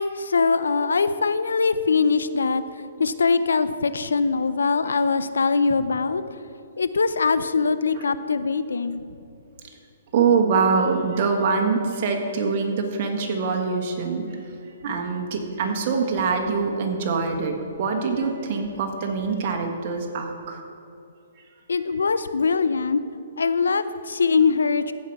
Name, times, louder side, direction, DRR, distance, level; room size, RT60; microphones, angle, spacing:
voice 1, 0.0-2.6 3.0-6.2 6.8-9.0 21.7-23.0 23.4-24.9, left 4 dB, 90° left, 13 dB, 0.4 m, -22 dB
voice 2, 10.1-14.2 14.8-20.6, right 5 dB, 45° right, 3 dB, 1.4 m, -24 dB
15.0 x 5.5 x 4.6 m, 2.6 s
hypercardioid pair, 140°, 0 cm